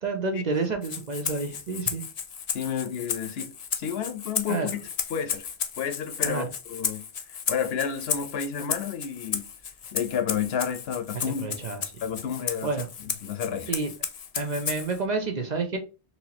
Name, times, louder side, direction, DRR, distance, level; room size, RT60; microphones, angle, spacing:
voice 1, 0.0-2.0 4.5-4.7 6.2-6.5 11.4-11.8 12.6-12.9 13.7-13.9 14.3-15.8, right 3 dB, 50° right, 0.7 m, -29 dB
Rattle (instrument), 0.8-15.0, left 7 dB, 50° left, 0.4 m, -34 dB
voice 2, 2.5-4.8 5.1-5.5 5.8-7.0 7.3-9.4 9.9-11.5 12.0-12.7 13.0-13.7, left 7 dB, 70° left, 0.8 m, -31 dB
4.2 x 2.7 x 2.7 m
omnidirectional pair, 1.1 m